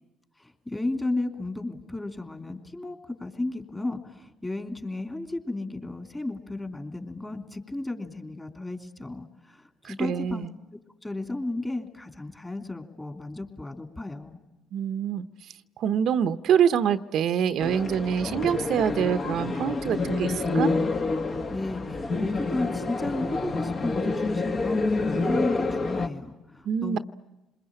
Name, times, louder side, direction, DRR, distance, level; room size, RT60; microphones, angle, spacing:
voice 1, 0.4-10.4 11.0-14.4 21.5-27.0, left 2 dB, 15° left, 5 dB, 3.2 m, -33 dB
voice 2, 9.8-10.5 14.7-15.3 15.8-20.7 26.7-27.0, right 8 dB, 65° right, 11 dB, 0.8 m, -25 dB
sound 1, 17.6-26.1, left 3 dB, 45° left, 2.2 m, -28 dB
27.5 x 21.5 x 8.9 m, 1.1 s
supercardioid pair, 75°, 0 cm